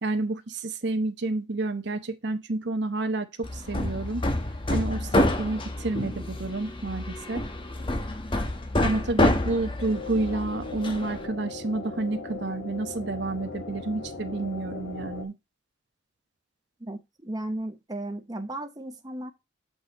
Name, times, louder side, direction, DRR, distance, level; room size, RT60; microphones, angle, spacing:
voice 1, 0.0-4.3 4.7-7.5 8.8-15.3, right 2 dB, 60° right, 0.9 m, -30 dB
Hammer, 3.4-11.3, left 1 dB, 25° left, 1.1 m, -28 dB
sound 1, 9.9-15.3, left 3 dB, 75° left, 1.7 m, -38 dB
voice 2, 16.8-19.3, right 1 dB, 20° right, 0.8 m, -35 dB
6.8 x 5.4 x 4.0 m
head